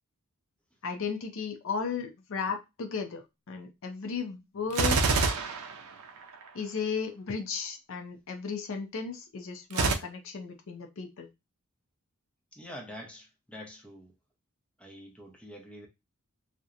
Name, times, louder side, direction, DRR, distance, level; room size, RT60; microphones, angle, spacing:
voice 1, 0.8-5.0 6.5-11.3, left 5 dB, 65° left, 0.5 m, -35 dB
Gunshot gunfire, 4.7-6.5 9.7-9.9, right 4 dB, 80° right, 0.5 m, -26 dB
voice 2, 12.5-14.1 14.8-15.9, equal, 5° left, 0.6 m, -46 dB
2.7 x 2.1 x 2.4 m
head